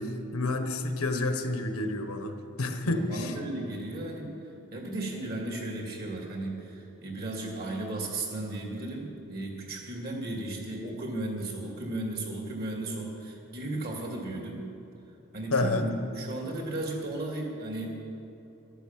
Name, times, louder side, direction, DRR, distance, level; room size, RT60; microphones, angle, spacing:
voice 1, 0.0-3.3 15.5-15.8, left 2 dB, 80° left, 7 dB, 1.2 m, -29 dB
voice 2, 2.8-4.4 4.7-14.7 15.3-17.9, right 2 dB, 45° right, 0 dB, 2.5 m, -35 dB
12.5 x 11.5 x 7.5 m, 2.8 s
head